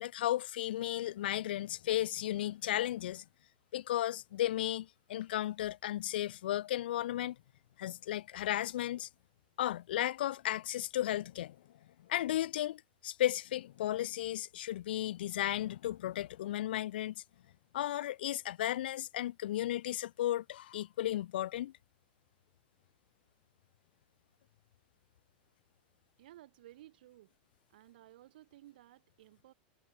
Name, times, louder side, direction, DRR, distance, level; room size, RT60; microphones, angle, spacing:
voice 1, 0.0-3.2 3.7-7.4 7.8-9.1 9.6-11.6 12.1-17.1 17.7-21.7, left 13 dB, 85° left, 0.4 m, -34 dB
voice 2, 26.2-27.3 27.7-29.5, right 15 dB, 70° right, 2.9 m, -57 dB
supercardioid pair, 165°, 5 cm